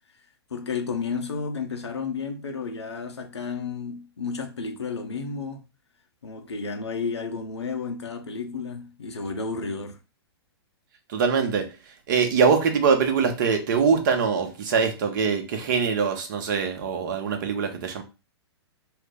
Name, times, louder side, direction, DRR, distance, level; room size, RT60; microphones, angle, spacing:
voice 1, 0.5-5.6 6.2-10.0, left 5 dB, 80° left, 0.7 m, -32 dB
voice 2, 11.1-18.0, right 5 dB, 45° right, 0.7 m, -23 dB
2.4 x 2.0 x 3.6 m
figure-of-eight pair, 115°, 14 cm